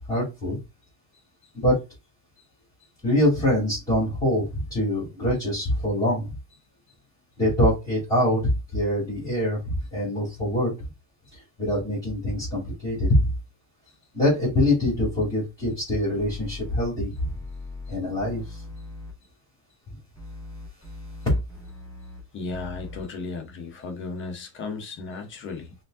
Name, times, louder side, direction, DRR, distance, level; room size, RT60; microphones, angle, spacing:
voice 1, 0.1-0.6 1.5-1.7 3.0-6.3 7.4-8.4 8.7-10.9 11.3-13.3 14.1-17.3 17.9-18.6, left 1 dB, 10° left, 2.7 m, -24 dB
sound 1, 16.1-16.9 17.1-19.1 20.1-22.2 22.5-23.0, left 2 dB, 10° right, 2.1 m, -40 dB
voice 2, 22.3-25.7, left 4 dB, 25° left, 0.7 m, -35 dB
5.6 x 2.7 x 2.5 m
cardioid pair, 175°, 48 cm